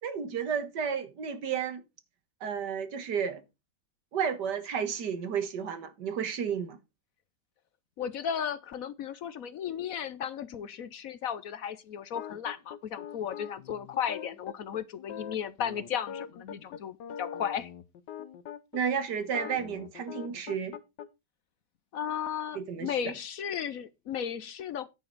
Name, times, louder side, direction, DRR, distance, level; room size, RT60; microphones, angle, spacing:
voice 1, 0.0-1.8 2.4-3.4 4.1-6.8 18.7-20.8 22.6-22.9, right 7 dB, 75° right, 1.9 m, -32 dB
voice 2, 8.0-17.7 21.9-24.9, left 8 dB, 65° left, 1.0 m, -35 dB
sound 1, 12.1-18.8 19.2-21.1, left 8 dB, 90° left, 1.5 m, -42 dB
9.8 x 8.8 x 3.9 m
omnidirectional pair, 1.8 m